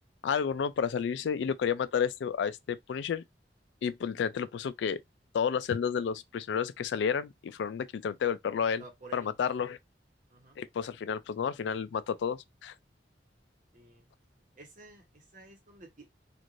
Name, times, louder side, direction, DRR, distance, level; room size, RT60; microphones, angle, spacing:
voice 1, 0.2-3.2 3.8-5.0 5.3-8.8 9.1-9.8 10.6-12.7, left 7 dB, 75° left, 0.3 m, -31 dB
voice 2, 8.8-9.4 10.3-10.6 13.7-14.1 14.6-16.1, right 2 dB, 45° right, 1.0 m, -51 dB
3.1 x 2.5 x 2.5 m
head